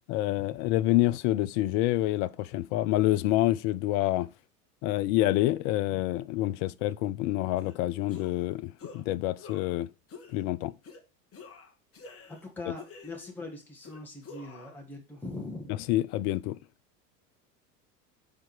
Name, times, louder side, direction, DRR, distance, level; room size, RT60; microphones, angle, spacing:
voice 1, 0.1-4.3 4.8-9.9 10.3-10.7 15.7-16.6, left 15 dB, 45° left, 0.5 m, -27 dB
sound 1, 7.6-7.8 8.1-8.5 8.8-9.0 9.4-9.8 10.1-10.4 10.8-11.0 11.3-12.5 12.8-13.4 13.8-14.8, left 4 dB, 30° left, 1.4 m, -48 dB
voice 2, 12.3-15.8, left 2 dB, 5° left, 1.7 m, -41 dB
5.2 x 4.4 x 5.8 m
hypercardioid pair, 80°, 49 cm